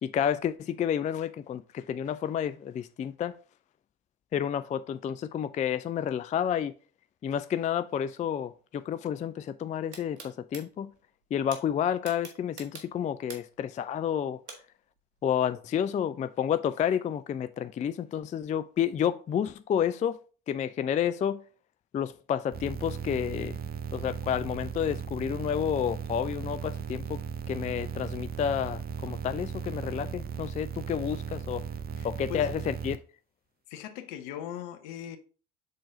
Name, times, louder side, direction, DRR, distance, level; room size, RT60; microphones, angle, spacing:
voice 1, 0.0-3.3 4.3-6.7 7.2-10.9 11.3-14.4 15.2-20.2 20.5-21.4 21.9-23.6 23.9-27.2 27.5-31.6 32.0-33.0, left 9 dB, 25° left, 0.4 m, -30 dB
sound 1, 9.9-10.6 11.5-11.6 12.0-13.6 14.5-14.6, right 4 dB, 80° right, 1.2 m, -43 dB
sound 2, 22.5-33.0, right 7 dB, 30° right, 0.6 m, -37 dB
voice 2, 32.0-32.5 33.7-35.2, left 10 dB, 65° left, 0.9 m, -39 dB
6.6 x 3.9 x 3.6 m
hypercardioid pair, 60°, 33 cm